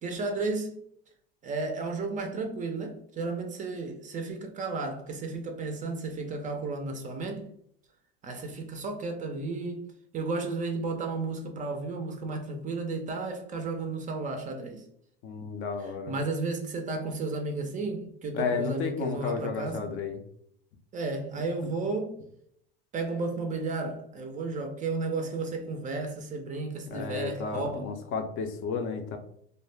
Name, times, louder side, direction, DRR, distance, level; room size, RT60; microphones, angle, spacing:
voice 1, 0.0-0.8 1.4-7.5 8.2-9.9 10.1-14.8 16.1-20.0 20.9-22.2 22.9-27.8, right 3 dB, 25° right, 0.4 m, -33 dB
voice 2, 15.2-16.1 18.3-20.2 21.6-21.7 26.9-29.2, left 5 dB, 45° left, 0.5 m, -32 dB
2.4 x 2.0 x 3.1 m
supercardioid pair, 115°, 29 cm